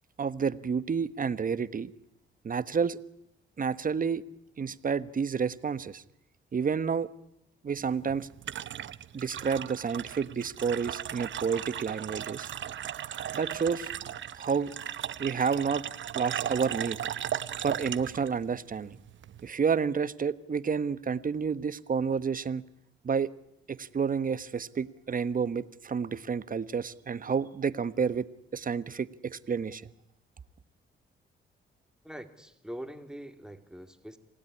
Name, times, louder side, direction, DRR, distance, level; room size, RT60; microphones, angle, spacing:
voice 1, 0.2-1.9 2.4-3.0 3.6-4.2 4.6-6.0 6.5-7.1 7.6-8.3 9.1-12.5 13.3-13.9 14.3-14.7 15.2-15.8 16.1-17.0 17.6-19.0 19.4-22.6 23.0-23.3 23.7-28.3 28.5-29.8, right 6 dB, 40° right, 15 dB, 1.2 m, -30 dB
sound 1, 7.8-19.5, right 10 dB, 65° right, 1.0 m, -37 dB
voice 2, 32.0-34.2, equal, 5° right, 7 dB, 2.7 m, -43 dB
27.0 x 17.0 x 9.9 m, 0.81 s
cardioid pair, 75°, 21 cm